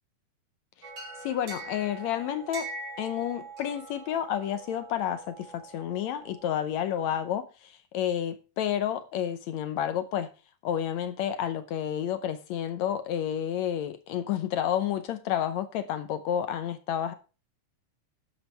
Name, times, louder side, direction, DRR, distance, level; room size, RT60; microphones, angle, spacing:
sound 1, 0.8-6.5, right 3 dB, 35° right, 3.6 m, -43 dB
voice 1, 1.2-2.7 3.0-10.3 10.6-17.1, left 10 dB, 75° left, 1.6 m, -30 dB
13.0 x 10.5 x 3.4 m
omnidirectional pair, 4.0 m